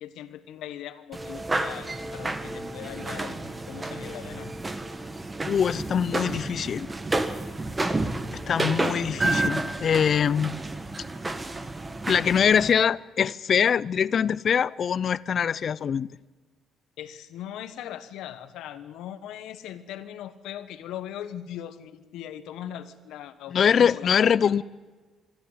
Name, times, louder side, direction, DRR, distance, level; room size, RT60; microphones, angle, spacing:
voice 1, 0.0-4.5 9.1-9.3 17.0-24.6, left 11 dB, 85° left, 1.5 m, -40 dB
sound 1, 1.1-12.7, right 2 dB, 20° right, 1.5 m, -31 dB
voice 2, 5.4-6.9 8.5-10.5 12.1-16.1 23.5-24.6, left 7 dB, 45° left, 0.6 m, -23 dB
25.0 x 12.5 x 9.4 m
cardioid pair, 120°, 0 cm